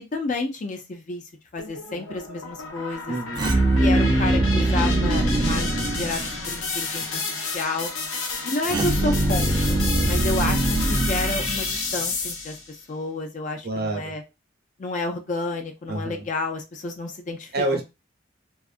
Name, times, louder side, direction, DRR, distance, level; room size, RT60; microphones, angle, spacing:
voice 1, 0.1-1.2 1.5-3.2 3.8-7.3 7.5-7.9 8.4-14.2 14.8-17.8, left 2 dB, 40° left, 4 dB, 0.4 m, -31 dB
sound 1, 1.6-12.7, left 4 dB, 85° left, 0.9 m, -31 dB
voice 2, 3.1-3.6 10.0-10.3 13.6-14.1 15.9-16.2 17.5-17.8, right 2 dB, 50° right, 2 dB, 0.8 m, -28 dB
sound 2, 3.3-6.7 8.7-12.0, right 1 dB, 20° right, 0.4 m, -22 dB
2.5 x 2.4 x 2.4 m, 0.25 s
head